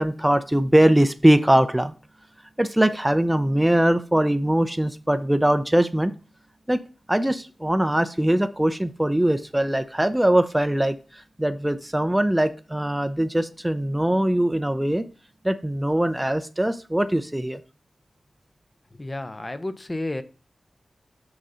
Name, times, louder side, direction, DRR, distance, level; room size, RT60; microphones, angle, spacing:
voice 1, 0.0-1.9 2.6-6.1 6.7-6.8 7.1-15.0 15.4-17.6, right 1 dB, 10° right, 9 dB, 0.5 m, -21 dB
voice 2, 18.9-20.2, left 2 dB, 25° left, 11 dB, 0.7 m, -31 dB
6.2 x 4.0 x 5.6 m, 0.36 s
cardioid pair, 60°, 0 cm